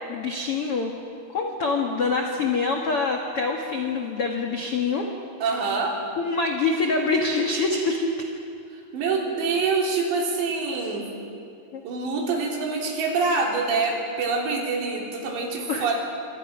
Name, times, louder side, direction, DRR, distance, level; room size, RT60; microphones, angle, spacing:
voice 1, 0.1-0.9 1.3-5.1 6.2-8.3 11.7-11.8 15.6-15.9, left 3 dB, 80° left, 2 dB, 1.3 m, -25 dB
voice 2, 5.4-6.0 8.7-11.1 11.8-16.0, right 4 dB, 75° right, 0 dB, 5.3 m, -25 dB
27.0 x 24.0 x 6.0 m, 2.5 s
omnidirectional pair, 5.2 m